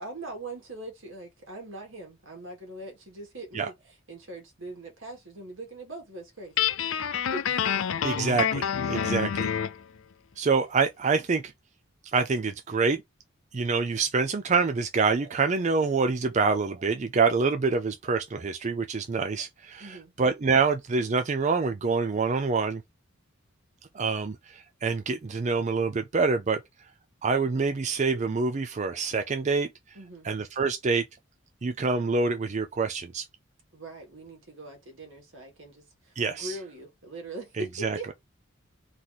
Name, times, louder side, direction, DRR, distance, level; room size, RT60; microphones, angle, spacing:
voice 1, 0.0-6.7 7.3-8.2 19.8-20.1 29.9-30.3 33.7-38.1, right 2 dB, 75° right, 2.3 m, -41 dB
Guitar, 6.6-9.8, left 8 dB, 85° left, 0.5 m, -27 dB
voice 2, 8.0-8.4 8.9-9.5 10.4-11.5 12.1-13.0 13.5-22.8 23.9-26.6 27.2-30.0 30.2-31.0 31.6-33.2 36.2-36.6 37.6-38.0, right 4 dB, 35° right, 0.4 m, -26 dB
4.1 x 3.1 x 3.9 m
head